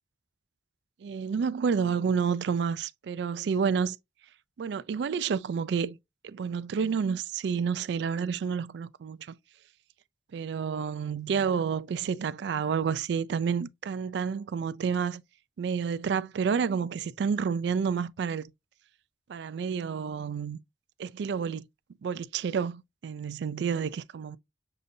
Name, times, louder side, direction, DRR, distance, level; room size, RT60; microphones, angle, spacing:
voice 1, 1.0-4.0 4.6-6.0 6.2-9.3 10.3-15.2 15.6-18.4 19.3-20.6 21.0-21.7 22.0-24.4, right 6 dB, 65° right, 0.3 m, -29 dB
6.6 x 2.6 x 2.6 m
head